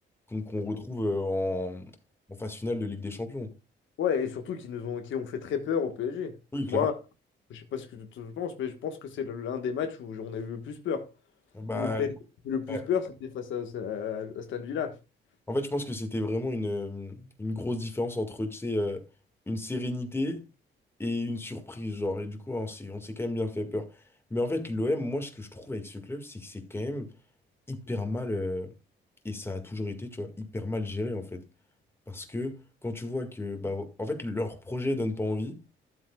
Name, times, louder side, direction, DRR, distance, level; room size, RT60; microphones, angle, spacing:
voice 1, 0.3-1.9 2.3-3.5 6.5-6.9 11.5-12.1 12.7-12.8 15.5-19.0 19.5-20.4 21.0-23.9 24.3-27.1 27.7-28.7 29.2-31.4 32.1-32.6 32.8-35.6, left 2 dB, 10° left, 1.8 m, -32 dB
voice 2, 4.0-6.3 6.7-6.9 7.5-11.0 11.7-12.1 12.4-14.9, left 7 dB, 75° left, 1.4 m, -32 dB
12.5 x 7.9 x 2.3 m
cardioid pair, 90°, 20 cm